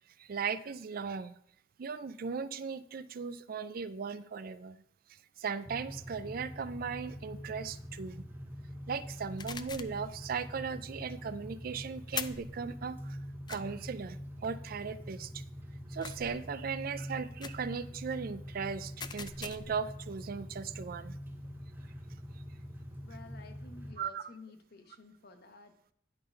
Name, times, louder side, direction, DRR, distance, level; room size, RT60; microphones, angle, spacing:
voice 1, 0.2-1.4 1.8-4.8 5.4-8.2 8.9-13.2 13.5-15.4 15.9-21.2 24.0-24.3, right 5 dB, 55° right, 14 dB, 0.4 m, -38 dB
sound 1, 5.6-24.0, equal, 10° right, 0.7 m, -45 dB
sound 2, 9.4-10.0 12.1-12.5 13.5-13.6 16.0-16.4 17.4-17.7 19.0-19.8, left 6 dB, 25° left, 0.4 m, -41 dB
voice 2, 23.0-25.9, left 3 dB, 60° left, 6 dB, 1.0 m, -52 dB
10.5 x 3.8 x 5.1 m, 0.66 s
head